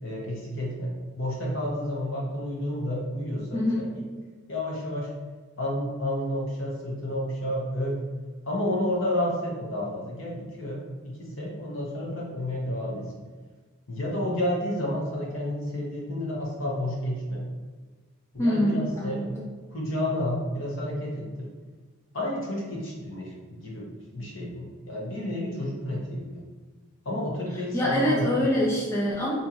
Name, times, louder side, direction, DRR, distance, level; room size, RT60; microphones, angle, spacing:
voice 1, 0.0-3.9 4.5-5.1 5.6-8.0 8.5-13.3 13.9-17.5 18.3-19.2 19.7-21.5 22.1-23.9 24.1-26.4 27.0-28.4, left 1 dB, 60° left, -3 dB, 0.9 m, -30 dB
voice 2, 3.5-3.9 18.4-19.5 27.7-29.3, equal, 10° left, -6 dB, 0.4 m, -25 dB
2.9 x 2.6 x 3.6 m, 1.4 s
head